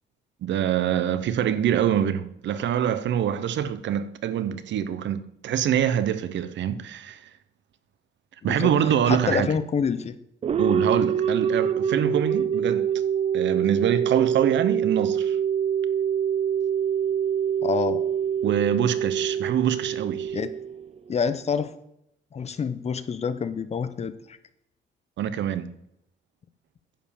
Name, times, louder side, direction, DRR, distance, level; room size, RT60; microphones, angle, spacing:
voice 1, 0.4-7.3 8.4-9.5 10.6-12.9 13.3-15.4 18.4-20.4 25.2-25.7, right 9 dB, 70° right, 0.7 m, -25 dB
voice 2, 8.4-8.7 9.1-10.2 17.6-18.0 20.3-20.5 21.1-21.7 22.3-24.4, left 6 dB, 35° left, 0.6 m, -27 dB
sound 1, 10.4-21.1, right 8 dB, 35° right, 0.4 m, -25 dB
10.0 x 5.2 x 7.0 m
cardioid pair, 150°, 20 cm